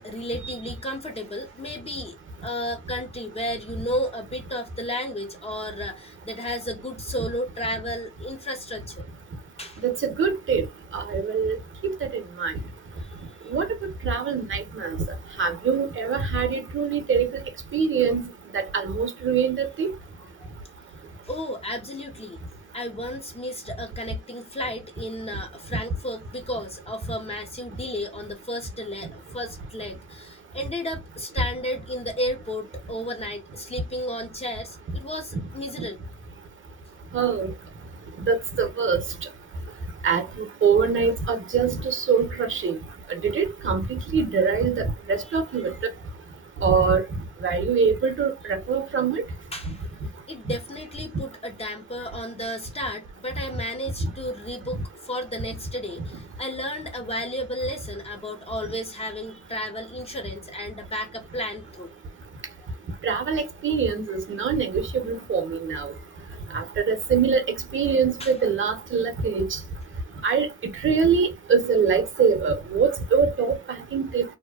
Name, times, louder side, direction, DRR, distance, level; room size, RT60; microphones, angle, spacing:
voice 1, 0.0-2.2 2.4-9.1 9.6-9.8 21.2-22.4 22.7-36.0 49.5-49.9 50.3-61.9 68.2-68.3, equal, 20° left, 0.6 m, -33 dB
voice 2, 9.8-10.6 10.9-11.6 11.8-12.5 13.5-13.7 14.0-15.0 15.4-17.3 17.7-18.2 18.5-19.9 35.8-35.9 37.1-37.5 38.2-39.0 40.0-42.8 43.1-45.7 46.6-47.0 47.4-49.2 54.0-54.1 63.0-65.9 66.5-67.4 67.7-69.6 70.2-70.5 70.8-74.2, right 6 dB, 40° right, 0.8 m, -24 dB
2.7 x 2.1 x 2.3 m
cardioid pair, 90°, 30 cm